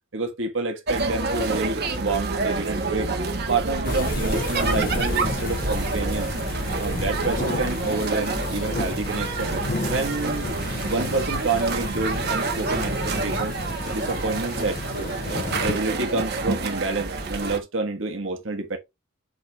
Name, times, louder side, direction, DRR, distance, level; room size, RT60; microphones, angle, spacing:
voice 1, 0.1-3.1 3.5-6.3 6.8-9.5 9.9-10.5 10.8-13.6 13.9-15.1 15.6-18.8, right 3 dB, 65° right, 1.5 m, -28 dB
sound 1, 0.9-17.6, right 3 dB, 50° right, 1.2 m, -28 dB
sound 2, 3.8-15.8, left 2 dB, 45° left, 0.8 m, -32 dB
7.9 x 3.5 x 3.8 m
head